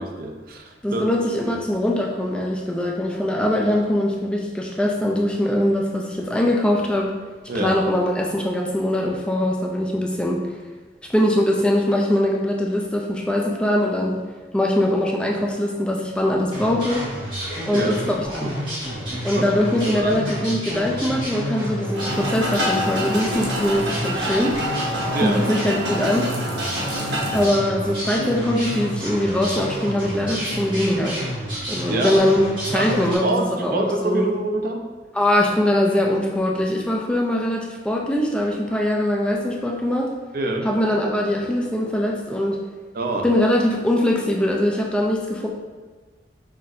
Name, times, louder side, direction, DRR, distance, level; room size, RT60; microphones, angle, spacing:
voice 1, 0.0-1.6 7.5-7.7 17.7-17.9 19.3-19.5 19.9-20.2 25.1-25.4 31.9-32.2 32.7-33.5 33.7-34.8 40.3-40.7 42.9-43.3, right 2 dB, 55° right, 3 dB, 0.5 m, -26 dB
voice 2, 0.8-7.1 7.6-10.4 11.1-14.2 14.5-17.0 17.7-18.6 19.2-24.6 25.2-26.3 27.3-31.2 31.7-34.3 35.1-40.1 40.6-42.6 43.2-45.5, left 1 dB, 5° left, -1 dB, 0.3 m, -22 dB
sound 1, 16.5-33.2, equal, 30° right, 1.4 m, -30 dB
sound 2, 22.0-27.5, equal, 90° right, 0.8 m, -27 dB
5.8 x 2.6 x 2.6 m, 1.4 s
head